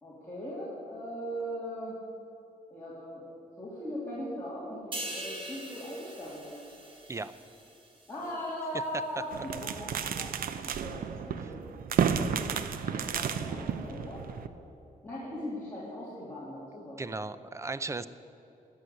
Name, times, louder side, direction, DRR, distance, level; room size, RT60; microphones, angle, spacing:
voice 1, 0.0-2.0 2.7-3.3 3.6-6.5 8.1-11.7 12.8-14.3 15.0-17.1, equal, 15° left, -9 dB, 3.1 m, -39 dB
sound 1, 4.9-8.4 8.8-9.1, right 1 dB, 35° right, 3.0 m, -43 dB
sound 2, 9.3-14.5, right 7 dB, 80° right, 0.7 m, -32 dB
voice 2, 17.0-18.1, right 3 dB, 20° right, 14 dB, 0.5 m, -36 dB
17.0 x 6.3 x 9.8 m, 2.9 s
wide cardioid pair, 145°, 15 cm